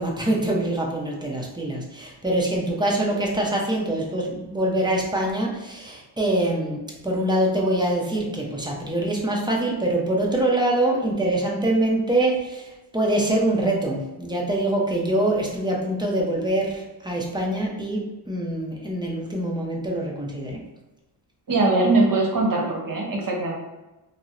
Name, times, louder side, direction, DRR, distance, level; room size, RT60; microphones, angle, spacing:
voice 1, 0.0-20.6, right 1 dB, 10° right, -2 dB, 0.6 m, -24 dB
voice 2, 21.5-23.6, right 2 dB, 45° right, -1 dB, 0.9 m, -21 dB
2.8 x 2.0 x 3.6 m, 1.1 s
cardioid pair, 95°, 44 cm